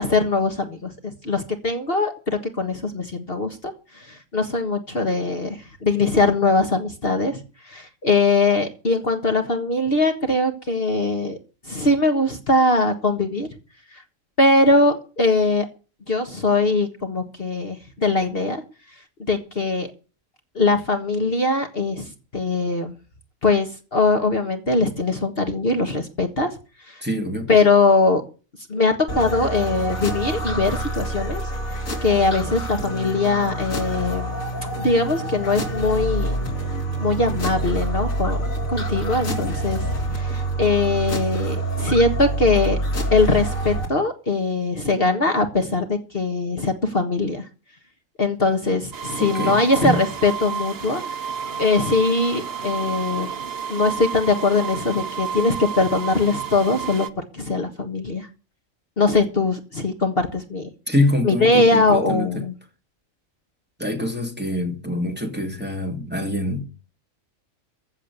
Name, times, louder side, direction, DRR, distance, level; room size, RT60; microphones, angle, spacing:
voice 1, 0.0-11.4 11.7-13.5 13.9-14.0 14.4-15.7 16.1-18.6 19.3-19.9 20.6-22.9 23.4-26.6 26.9-27.0 27.5-28.2 28.7-31.4 31.7-34.3 34.8-36.4 37.0-42.8 43.1-47.5 48.2-51.2 51.6-53.3 53.7-57.1 57.3-58.3 59.0-60.7 61.2-62.5, left 3 dB, 45° left, 1.7 m, -21 dB
voice 2, 27.0-27.5 49.2-50.0 60.9-62.3 63.8-66.6, left 1 dB, 5° right, 2.8 m, -25 dB
sound 1, 29.1-43.9, right 1 dB, 80° left, 3.1 m, -26 dB
sound 2, 48.9-57.1, right 7 dB, 50° right, 1.2 m, -31 dB
15.0 x 7.4 x 8.5 m
omnidirectional pair, 1.4 m